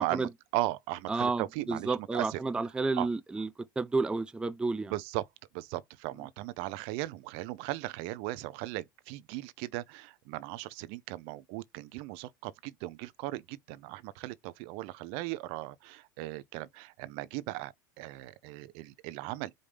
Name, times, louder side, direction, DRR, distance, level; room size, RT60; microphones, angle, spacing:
voice 1, 0.0-2.4 3.0-3.1 4.9-5.2 5.5-19.5, right 17 dB, 60° right, 0.6 m, -37 dB
voice 2, 1.1-3.5 3.8-4.9, right 3 dB, 10° right, 0.4 m, -31 dB
5.1 x 2.6 x 3.4 m
hypercardioid pair, 95°, 11 cm